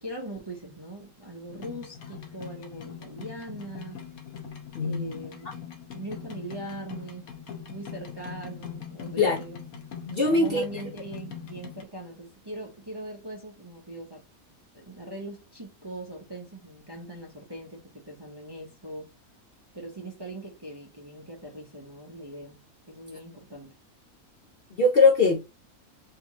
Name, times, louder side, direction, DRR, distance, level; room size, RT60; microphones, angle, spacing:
voice 1, 0.0-4.0 4.8-5.5 5.9-7.3 7.7-9.6 10.3-14.2 14.7-19.1 19.7-22.6 22.9-23.7, right 1 dB, 20° right, 0.7 m, -40 dB
sound 1, 1.5-11.8, left 8 dB, 75° left, 1.3 m, -42 dB
voice 2, 4.7-5.1 9.2-9.4 10.0-10.6 24.7-25.4, left 3 dB, 55° left, 0.7 m, -21 dB
3.4 x 2.9 x 2.9 m
omnidirectional pair, 1.6 m